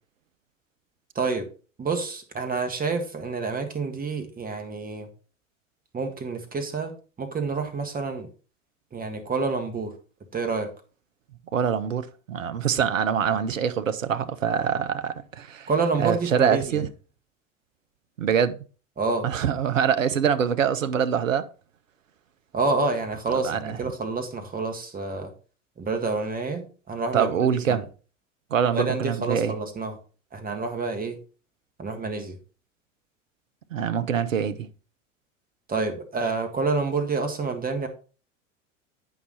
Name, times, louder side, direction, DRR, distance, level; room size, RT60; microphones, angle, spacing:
voice 1, 1.1-1.5 1.8-5.1 5.9-8.3 8.9-9.9 10.3-10.7 15.7-16.8 19.0-19.3 22.5-25.3 25.8-27.8 28.7-30.0 30.3-31.2 31.8-32.4 35.7-37.9, right 4 dB, 20° right, 1.7 m, -28 dB
voice 2, 11.5-15.7 16.0-16.9 18.2-18.6 19.2-21.5 23.3-23.8 27.1-27.8 28.5-29.5 33.7-34.7, right 8 dB, 85° right, 0.7 m, -24 dB
8.4 x 5.6 x 4.1 m
hypercardioid pair, 80°, 38 cm